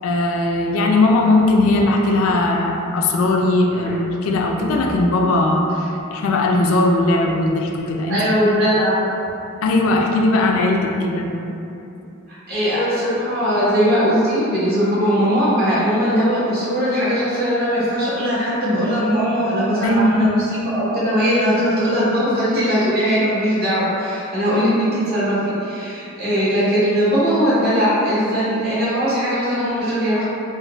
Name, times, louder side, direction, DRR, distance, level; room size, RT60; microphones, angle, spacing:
voice 1, 0.0-8.3 9.6-11.4 19.8-20.3, left 2 dB, 80° left, 1 dB, 0.3 m, -18 dB
voice 2, 8.1-9.0 12.5-30.2, equal, 45° right, -10 dB, 0.9 m, -19 dB
3.8 x 2.1 x 2.3 m, 2.8 s
head